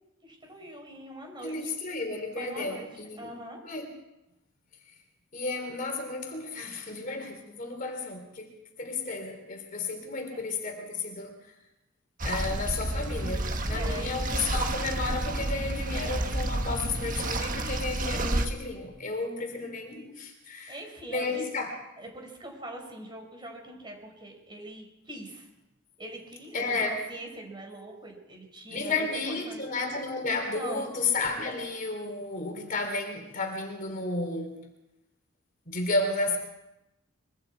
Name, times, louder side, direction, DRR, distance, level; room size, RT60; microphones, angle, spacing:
voice 1, 0.2-1.7 2.3-3.6 10.3-10.4 13.7-14.2 20.7-21.4 22.0-25.5 26.0-29.6 30.3-30.9, right 1 dB, 20° right, 2 dB, 5.0 m, -43 dB
voice 2, 1.4-3.4 3.6-3.9 5.3-11.3 12.2-20.8 21.1-21.7 26.5-27.0 28.7-34.6 35.7-36.4, left 3 dB, 40° left, 4 dB, 3.4 m, -32 dB
sound 1, 12.2-18.5, right 1 dB, 40° right, 1.5 m, -30 dB
24.0 x 23.5 x 4.7 m, 0.95 s
head